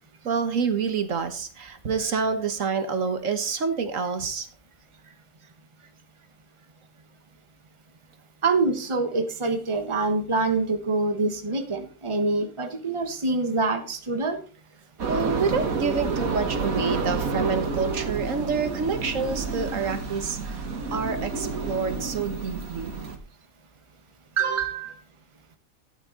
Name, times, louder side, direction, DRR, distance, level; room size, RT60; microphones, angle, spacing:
voice 1, 0.2-4.5 15.1-20.6 20.9-22.9, right 5 dB, 65° right, 9 dB, 1.5 m, -27 dB
voice 2, 8.4-14.4 24.4-24.9, right 3 dB, 25° right, 7 dB, 1.2 m, -25 dB
sound 1, 15.0-23.2, right 4 dB, 80° right, 1.8 m, -29 dB
13.0 x 8.7 x 4.0 m, 0.37 s
omnidirectional pair, 1.4 m